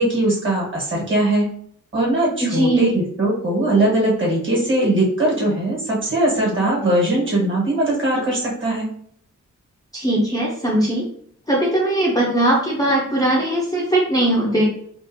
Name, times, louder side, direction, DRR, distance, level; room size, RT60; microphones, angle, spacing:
voice 1, 0.0-1.5 1.9-8.9, right 1 dB, 40° right, -4 dB, 1.4 m, -20 dB
voice 2, 2.4-2.9 9.9-11.0 11.5-14.6, right 1 dB, 10° left, -5 dB, 0.5 m, -19 dB
3.6 x 2.5 x 2.7 m, 0.64 s
wide cardioid pair, 160°, 31 cm